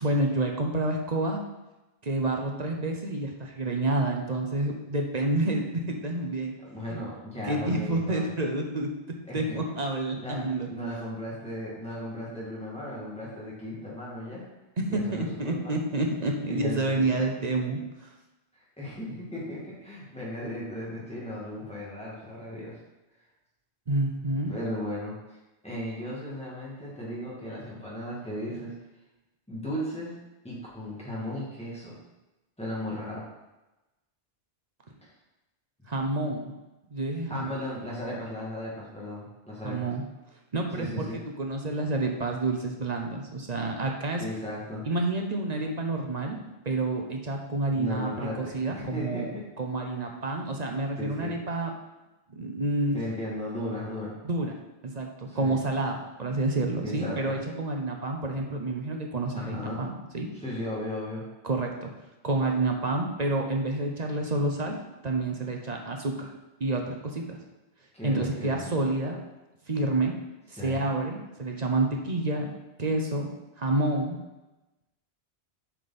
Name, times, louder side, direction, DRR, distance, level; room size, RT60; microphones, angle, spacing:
voice 1, 0.0-1.4 2.0-6.5 6.9-7.0 7.5-8.9 9.3-10.7 14.8-18.1 23.9-24.5 35.9-36.6 36.9-37.5 39.6-40.0 40.5-41.1 41.4-44.2 44.9-46.4 46.7-49.3 49.6-51.7 52.4-53.0 54.2-54.5 54.8-60.3 61.4-61.9 62.2-64.8 65.0-66.3 66.6-67.4 68.0-69.2 69.7-70.1 70.5-72.5 72.8-73.3 73.6-74.2, right 2 dB, 40° right, 2 dB, 0.9 m, -29 dB
voice 2, 6.6-8.3 9.3-9.6 10.2-14.5 14.9-15.8 16.5-17.2 18.5-22.8 24.5-28.8 29.5-30.2 30.4-32.0 32.6-33.2 37.3-39.9 40.8-41.2 44.2-44.8 47.7-49.5 50.0-50.1 50.9-51.4 52.9-54.2 55.3-55.6 56.8-57.4 59.3-59.8 60.3-61.2 67.9-68.8 70.6-70.8, left 1 dB, 5° left, -6 dB, 2.3 m, -36 dB
7.7 x 5.2 x 4.3 m, 1.0 s
omnidirectional pair, 1.1 m